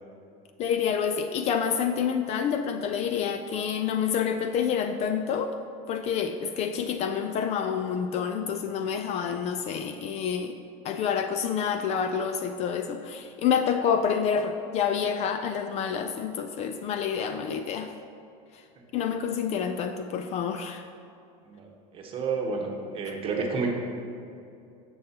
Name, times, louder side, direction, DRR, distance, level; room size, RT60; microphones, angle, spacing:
voice 1, 0.6-5.5 5.9-10.6 10.8-17.9 18.9-20.9, left 7 dB, 35° left, 7 dB, 0.4 m, -28 dB
voice 2, 21.4-22.7 22.9-23.7, right 4 dB, 30° right, 0 dB, 1.1 m, -30 dB
10.0 x 7.0 x 2.9 m, 2.5 s
supercardioid pair, 150°, 18 cm